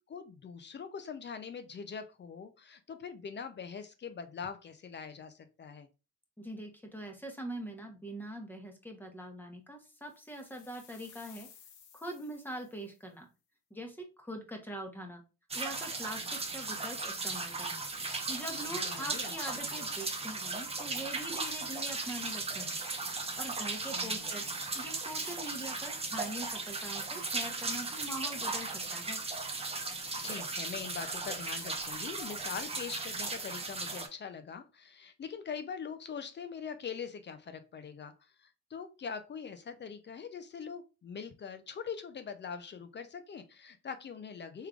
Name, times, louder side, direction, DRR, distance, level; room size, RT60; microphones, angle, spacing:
voice 1, 0.1-5.9 18.5-19.9 23.9-24.7 30.2-38.1 38.4-44.7, left 6 dB, 35° left, 9 dB, 0.5 m, -43 dB
voice 2, 6.4-11.5 11.9-13.3 13.7-15.2 15.5-17.8 18.1-22.8 23.4-29.2, right 1 dB, 5° left, 3 dB, 0.9 m, -43 dB
sound 1, 10.0-13.1, left 7 dB, 75° left, 0.8 m, -57 dB
sound 2, 15.5-34.1, right 3 dB, 20° right, 0.6 m, -37 dB
3.6 x 3.2 x 2.3 m, 0.30 s
cardioid pair, 90°, 30 cm